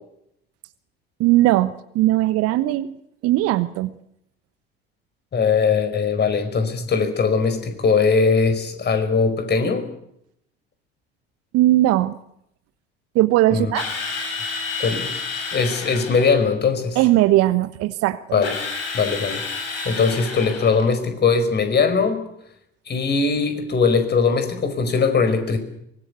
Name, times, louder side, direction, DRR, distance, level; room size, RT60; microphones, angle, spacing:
voice 1, 1.2-2.9 3.2-3.9 11.5-12.2 13.1-13.9 16.9-18.2, right 16 dB, 50° right, 13 dB, 1.1 m, -18 dB
voice 2, 5.3-9.9 13.5-13.7 14.8-15.1 15.5-17.0 18.3-18.5 18.9-19.4 19.8-22.2 22.9-25.6, left 5 dB, 35° left, 9 dB, 5.1 m, -20 dB
Drill, 13.7-16.4 18.4-20.9, left 4 dB, 70° left, 6.1 m, -30 dB
24.0 x 21.0 x 8.2 m, 0.76 s
figure-of-eight pair, 60°, 31 cm